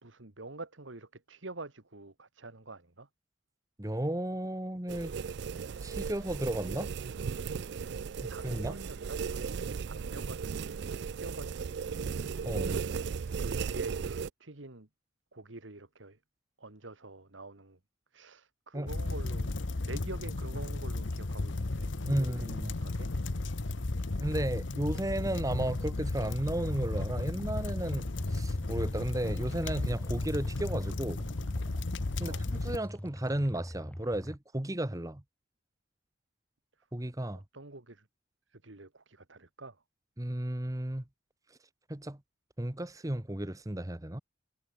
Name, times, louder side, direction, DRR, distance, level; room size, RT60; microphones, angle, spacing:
voice 1, 0.0-3.1 7.8-8.0 8.3-12.0 13.4-14.9 15.3-16.2 16.6-17.8 18.1-19.5 19.8-23.1 32.2-32.4 37.5-38.1 38.5-39.8, right 2 dB, 85° right, 2.2 m, -47 dB
voice 2, 3.8-5.1 5.8-6.9 8.2-8.8 12.4-12.8 18.7-18.9 22.1-22.8 24.2-31.3 32.2-35.2 36.9-37.4 40.2-41.0 41.9-42.2 42.6-44.2, right 1 dB, 20° right, 1.1 m, -34 dB
sound 1, 4.9-14.3, right 6 dB, 65° right, 0.4 m, -36 dB
sound 2, 18.9-32.8, left 2 dB, 80° left, 1.0 m, -34 dB
sound 3, 26.4-34.4, equal, 10° left, 2.0 m, -44 dB
head